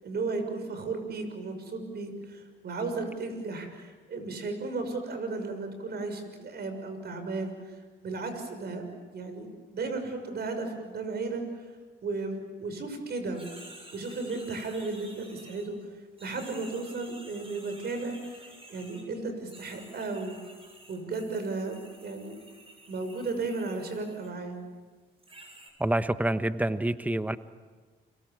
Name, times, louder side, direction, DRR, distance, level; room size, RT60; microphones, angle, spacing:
voice 1, 0.0-7.8 8.0-11.6 12.0-13.5 13.9-15.8 16.2-18.4 18.7-20.3 20.9-22.4 22.9-24.6, right 3 dB, 55° right, 7 dB, 6.3 m, -34 dB
sound 1, 13.3-15.9 16.2-19.1 19.5-24.3 25.2-25.7, right 1 dB, 30° right, 7.3 m, -51 dB
voice 2, 25.8-27.4, right 1 dB, 10° right, 11 dB, 1.1 m, -27 dB
30.0 x 23.0 x 7.6 m, 1.4 s
cardioid pair, 90°, 20 cm